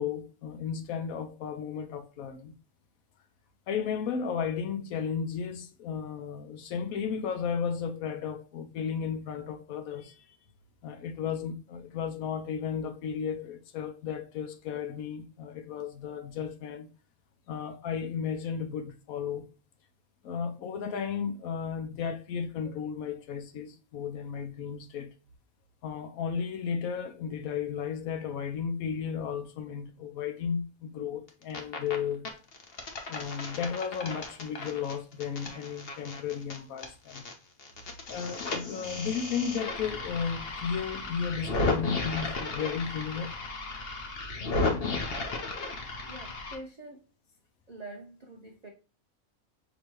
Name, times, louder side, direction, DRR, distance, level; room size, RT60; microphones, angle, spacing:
voice 1, 0.0-2.5 3.7-10.3 10.8-16.9 17.5-19.5 20.2-25.1 25.8-32.3 33.1-37.3 38.1-43.3, left 7 dB, 70° left, 1.1 m, -34 dB
sound 1, 31.3-32.0 32.3-37.3 37.6-46.6, left 3 dB, 45° left, 1.0 m, -34 dB
voice 2, 46.0-47.1 47.7-48.7, right 2 dB, 55° right, 0.4 m, -45 dB
5.9 x 3.0 x 3.0 m
omnidirectional pair, 1.6 m